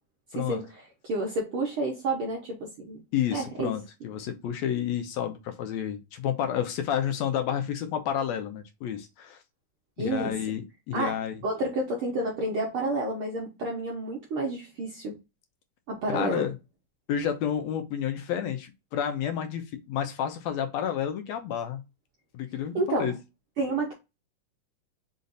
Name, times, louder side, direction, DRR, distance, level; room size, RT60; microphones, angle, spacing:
voice 1, 0.3-3.0 3.3-3.7 10.0-10.3 10.9-11.2 11.4-15.2 15.9-16.5 22.7-23.1 23.6-23.9, right 2 dB, 65° right, 1.4 m, -30 dB
voice 2, 3.1-9.4 10.0-11.4 16.1-16.5 17.1-21.8 22.3-23.2, left 9 dB, 75° left, 1.6 m, -30 dB
5.3 x 2.5 x 3.9 m
omnidirectional pair, 3.7 m